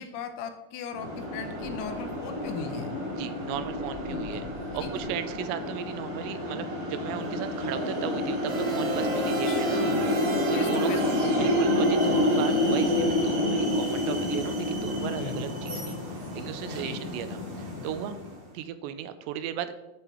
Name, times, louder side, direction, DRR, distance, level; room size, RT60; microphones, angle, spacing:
voice 1, 0.0-2.9 4.1-4.2 4.8-4.9 9.5-10.0 10.5-11.5 15.2-15.4 16.7-17.0, left 6 dB, 80° left, 7 dB, 2.6 m, -38 dB
sound 1, 0.9-18.4, left 1 dB, 50° right, 4.1 m, -28 dB
voice 2, 3.1-4.5 4.7-9.8 10.5-10.9 11.4-16.0 16.4-18.2 18.5-19.8, right 10 dB, 85° right, 11 dB, 2.8 m, -36 dB
sound 2, 8.5-12.8, right 2 dB, 70° right, 3.0 m, -35 dB
8.7 x 8.3 x 3.0 m, 1.0 s
omnidirectional pair, 5.0 m